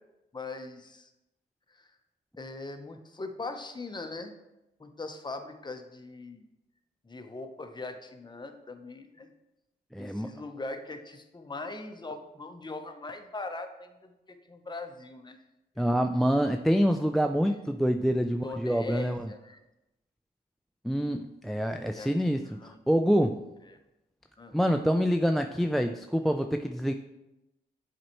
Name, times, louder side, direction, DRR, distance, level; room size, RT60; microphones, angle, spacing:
voice 1, 0.3-1.1 1.7-2.0 2.4-4.4 4.8-6.4 7.0-9.3 10.0-15.4 18.4-19.6 21.9-22.8 23.7-23.8 24.4-24.6, left 3 dB, 25° left, 6 dB, 0.8 m, -41 dB
voice 2, 9.9-10.3 15.8-19.3 20.8-23.4 24.5-26.9, equal, ahead, 6 dB, 0.3 m, -26 dB
7.5 x 4.4 x 3.1 m, 0.94 s
supercardioid pair, 55°, 18 cm